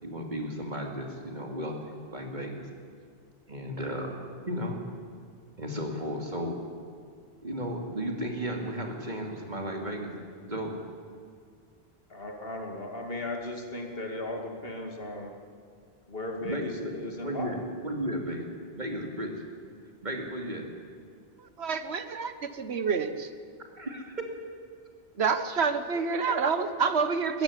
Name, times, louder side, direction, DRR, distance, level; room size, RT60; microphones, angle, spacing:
voice 1, 0.0-1.7 2.1-2.7 3.5-4.8 5.6-6.6 7.4-10.1 10.4-10.8 16.4-18.5 18.7-19.3 20.0-20.6 23.8-24.3 26.0-26.3, equal, 45° right, 1 dB, 3.1 m, -34 dB
voice 2, 12.1-15.3 16.1-17.5, left 2 dB, 65° left, 2 dB, 2.9 m, -36 dB
voice 3, 21.4-23.3 25.2-27.4, right 5 dB, 80° right, 10 dB, 1.4 m, -28 dB
21.0 x 15.0 x 10.0 m, 2.2 s
omnidirectional pair, 1.1 m